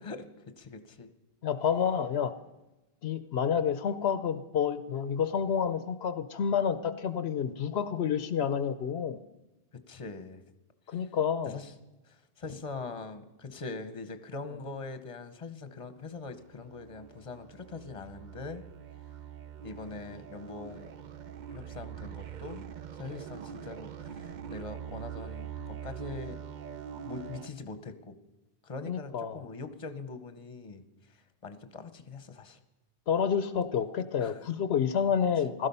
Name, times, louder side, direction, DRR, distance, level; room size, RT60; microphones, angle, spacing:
voice 1, 0.6-1.1 9.7-10.4 10.9-11.1 11.4-11.7 12.1-18.6 19.6-20.9 21.5-22.7 22.9-26.4 27.0-28.2 28.6-30.8 31.1-32.6 34.2-34.5, left 3 dB, 30° left, 10 dB, 1.0 m, -42 dB
voice 2, 1.4-2.3 3.0-9.2 10.9-11.6 28.9-29.4 33.1-35.7, left 7 dB, 75° left, 12 dB, 0.9 m, -29 dB
sound 1, 16.1-27.5, right 9 dB, 50° right, 0.6 m, -43 dB
16.0 x 12.5 x 5.5 m, 1.0 s
omnidirectional pair, 1.1 m